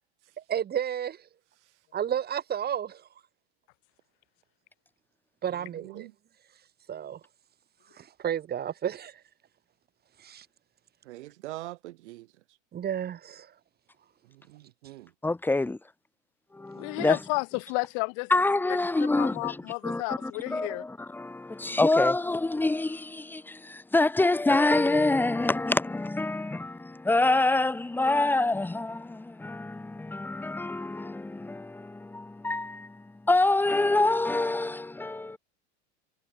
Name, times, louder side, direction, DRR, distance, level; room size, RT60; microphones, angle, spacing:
voice 1, 0.4-1.3 1.9-3.1 5.4-6.1 6.9-7.2 8.0-9.2 10.2-10.5 12.7-13.5, right 9 dB, 25° right, 5.5 m, -32 dB
voice 2, 5.8-6.1 11.0-12.3 14.3-15.1 19.0-19.1, right 17 dB, 70° right, 7.4 m, -43 dB
voice 3, 15.2-15.8 16.5-17.2 18.3-35.4, left 2 dB, 5° left, 1.5 m, -26 dB
voice 4, 16.8-18.3 19.2-20.8, left 40 dB or more, 55° left, 7.4 m, -31 dB
supercardioid pair, 130°, 35 cm